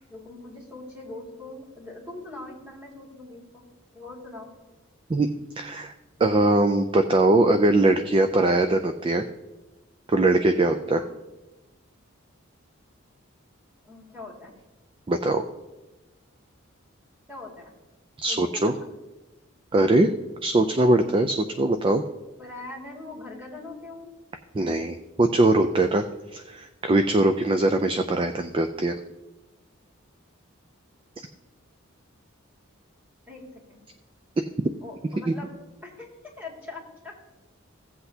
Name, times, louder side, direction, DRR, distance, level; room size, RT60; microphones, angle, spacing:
voice 1, 0.1-3.6 3.9-4.5 10.7-11.1 13.8-14.5 17.3-17.7 18.2-18.7 22.4-24.1 33.3-33.4 33.7-33.8 34.8-35.5 35.8-36.1 36.4-37.1, left 2 dB, 10° right, -3 dB, 2.2 m, -41 dB
voice 2, 5.6-5.9 6.2-9.3 10.1-11.0 15.1-15.5 18.2-18.7 19.7-20.1 20.4-22.0 24.5-26.0 26.3-29.0 35.3-35.4, right 2 dB, 25° right, 7 dB, 0.3 m, -21 dB
16.0 x 7.9 x 2.8 m, 1.1 s
head